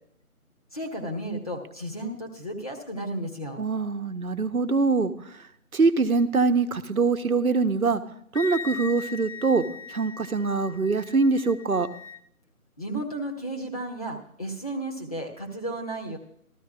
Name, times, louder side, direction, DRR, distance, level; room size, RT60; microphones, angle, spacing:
voice 1, 0.7-3.6 12.8-16.2, right 1 dB, 25° left, 1 dB, 1.2 m, -33 dB
voice 2, 3.6-5.3 5.7-8.0 8.3-9.6 9.9-11.9, right 4 dB, 70° right, 9 dB, 1.0 m, -23 dB
Wind instrument woodwind instrument, 8.3-12.2, left 4 dB, 55° left, 0.6 m, -39 dB
14.5 x 13.5 x 2.4 m, 0.67 s
figure-of-eight pair, 160°, 44 cm